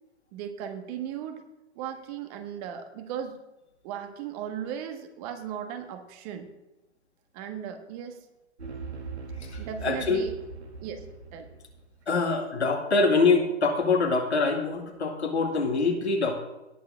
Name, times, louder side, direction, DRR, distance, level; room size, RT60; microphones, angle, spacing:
voice 1, 0.3-1.4 1.7-3.4 3.8-6.5 7.3-8.2 9.6-10.3 10.8-11.0 11.3-11.5, right 9 dB, 35° right, 6 dB, 1.6 m, -37 dB
sound 1, 8.6-12.0, right 4 dB, 80° right, 2.7 m, -40 dB
voice 2, 9.4-10.2 12.1-16.4, left 3 dB, 75° left, 2 dB, 2.5 m, -24 dB
18.0 x 7.2 x 3.7 m, 0.95 s
figure-of-eight pair, 115°, 33 cm